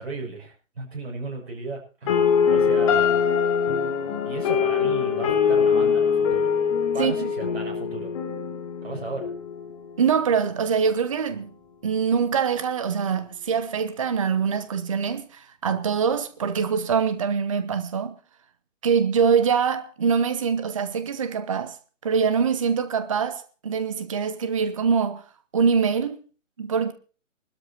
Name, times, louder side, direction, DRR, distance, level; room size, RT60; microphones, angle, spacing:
voice 1, 0.0-2.2 2.5-3.2 4.2-6.6 6.9-8.1 8.8-9.3, right 3 dB, 50° right, 6.8 m, -35 dB
sound 1, 2.1-10.1, left 6 dB, 25° left, 2.7 m, -23 dB
voice 2, 7.0-7.3 10.0-11.5 11.8-18.2 18.8-21.8 22.0-25.3 25.5-26.2 26.6-26.9, right 6 dB, 25° right, 0.7 m, -24 dB
23.5 x 13.0 x 2.9 m
figure-of-eight pair, 145°, 39 cm